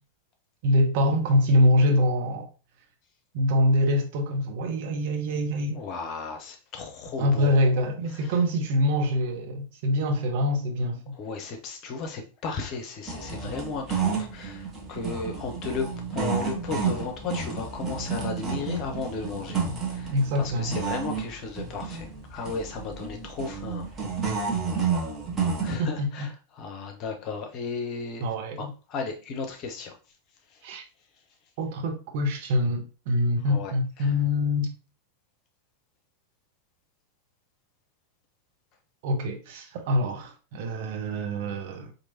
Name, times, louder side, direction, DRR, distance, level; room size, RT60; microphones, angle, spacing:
voice 1, 0.6-2.5 3.3-5.8 7.2-11.0 20.1-20.7 25.8-26.3 28.2-28.7 30.6-30.8 31.6-34.7 39.0-41.9, left 1 dB, 50° right, 0.8 m, -24 dB
voice 2, 5.7-7.6 8.2-8.3 11.1-23.9 25.6-28.3 28.6-29.9 30.5-30.6 33.5-34.1, left 4 dB, 35° left, 0.8 m, -35 dB
sound 1, 13.1-25.7, right 5 dB, 20° right, 1.0 m, -31 dB
4.5 x 2.7 x 2.7 m
figure-of-eight pair, 90°, 0 cm